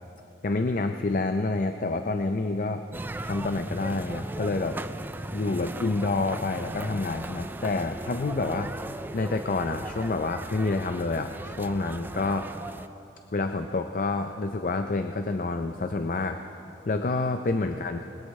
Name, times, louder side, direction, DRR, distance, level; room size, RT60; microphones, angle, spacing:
voice 1, 0.4-2.9 3.2-4.8 5.3-8.7 9.1-12.5 13.3-16.4 16.9-18.1, left 3 dB, 45° left, 7 dB, 0.5 m, -28 dB
sound 1, 2.9-12.9, right 2 dB, 10° right, 0.3 m, -37 dB
21.0 x 20.5 x 3.2 m, 3.0 s
head